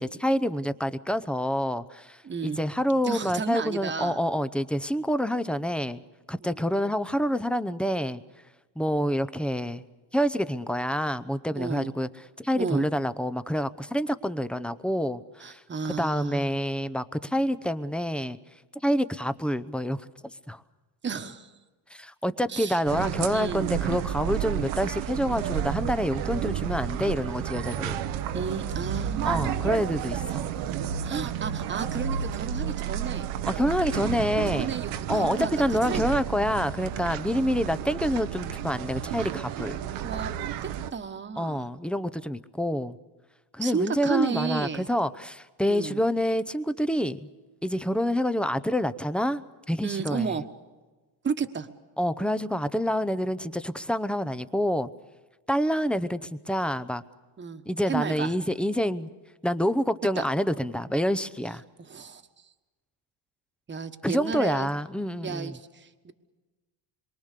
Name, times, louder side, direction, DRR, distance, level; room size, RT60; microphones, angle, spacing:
voice 1, 0.0-6.0 6.3-8.2 8.8-9.8 10.1-12.1 12.4-15.6 16.0-18.4 18.8-20.0 20.5-20.6 21.9-28.0 29.2-30.5 33.5-34.7 35.1-39.8 41.4-43.0 43.5-47.3 47.6-49.4 49.7-50.4 52.0-54.9 55.5-57.0 57.7-59.1 59.4-61.6 64.0-65.6, equal, ahead, 13 dB, 0.7 m, -27 dB
voice 2, 2.2-2.6 3.0-4.2 6.4-6.7 11.5-11.9 12.5-12.9 15.4-16.5 21.0-21.5 22.5-23.6 28.3-29.5 31.0-33.3 34.5-36.1 40.0-41.7 43.6-44.9 45.7-46.0 49.8-50.5 51.2-51.7 57.4-57.6 57.9-58.3 60.1-60.3 61.8-62.2 63.7-64.7 65.2-66.1, right 5 dB, 25° right, 8 dB, 1.3 m, -32 dB
sound 1, 22.9-40.9, right 10 dB, 85° right, 1.1 m, -31 dB
26.5 x 23.5 x 6.7 m, 1.2 s
cardioid pair, 120°, 46 cm